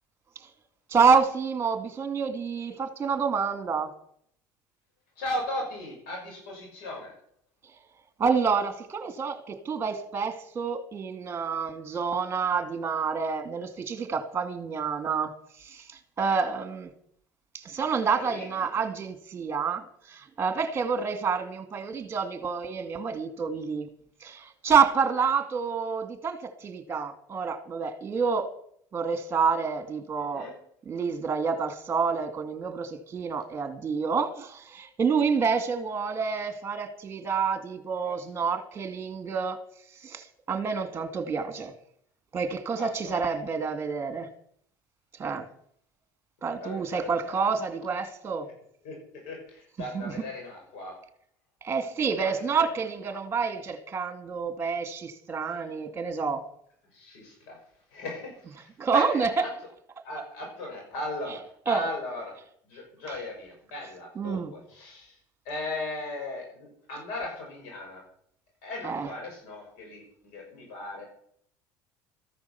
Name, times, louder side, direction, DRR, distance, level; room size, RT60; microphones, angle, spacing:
voice 1, 0.9-3.9 8.2-16.9 17.5-23.9 24.2-28.5 28.9-30.5 30.9-39.6 40.0-41.7 42.3-44.3 45.2-45.5 46.4-48.5 49.9-50.1 51.6-56.4 58.8-59.4 61.7-61.8 64.2-64.5 68.8-69.1, right 5 dB, 30° right, 2.3 m, -28 dB
voice 2, 5.2-7.1 18.1-18.5 30.3-30.5 38.0-38.2 42.7-43.2 46.4-47.5 48.8-51.0 52.2-52.6 53.1-53.2 56.9-57.6 57.9-59.5 60.0-62.4 62.6-65.2 65.4-68.0 68.6-71.0, left 2 dB, 80° left, 6.4 m, -37 dB
14.0 x 10.5 x 7.0 m
supercardioid pair, 100°, 8 cm